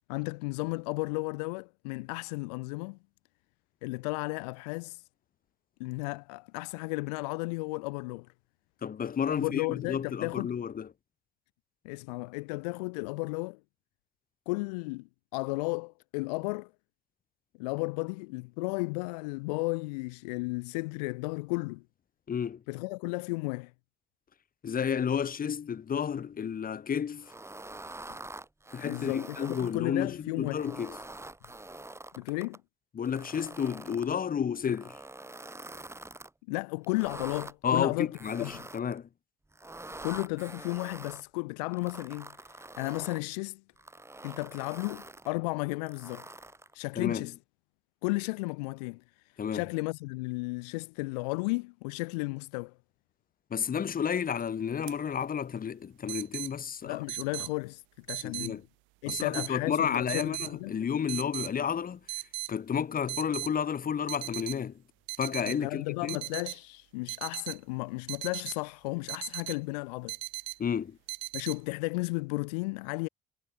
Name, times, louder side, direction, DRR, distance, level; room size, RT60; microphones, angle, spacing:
voice 1, 0.1-3.0 3.8-5.0 5.8-8.3 9.3-10.5 11.8-13.6 14.5-16.7 17.6-21.8 22.7-23.7 28.8-30.7 32.2-32.6 36.5-38.1 38.4-38.6 40.0-43.6 44.2-46.3 46.7-47.4 48.0-49.0 49.5-52.7 56.8-58.6 59.0-60.8 65.4-70.2 71.3-73.1, left 28 dB, 80° left, 6.4 m, -34 dB
voice 2, 8.8-10.9 22.3-22.6 24.6-27.3 28.7-31.0 32.9-35.0 37.6-39.1 47.0-47.3 49.4-49.6 53.5-57.0 58.2-58.6 59.1-62.0 62.5-64.8 65.2-66.2 70.6-71.0, left 7 dB, 45° left, 4.2 m, -31 dB
sound 1, 27.2-29.8 30.4-32.6 33.0-34.1 34.7-36.3 36.8-37.5 38.1-39.0 39.5-41.2 41.7-43.2 43.8-45.3 45.9-46.7, right 2 dB, 15° right, 4.3 m, -45 dB
sound 2, 54.2-54.4 54.9-55.0 56.1-56.5 57.1-57.5 58.1-58.5 59.1-59.5 60.1-60.5 61.1-61.5 62.1-62.5 63.1-63.5 64.1-64.6 65.1-65.6 66.1-66.6 67.1-67.6 68.1-68.6 69.1-69.6 70.1-70.6 71.1-71.6, right 23 dB, 70° right, 1.8 m, -37 dB
hypercardioid pair, 55°, 20 cm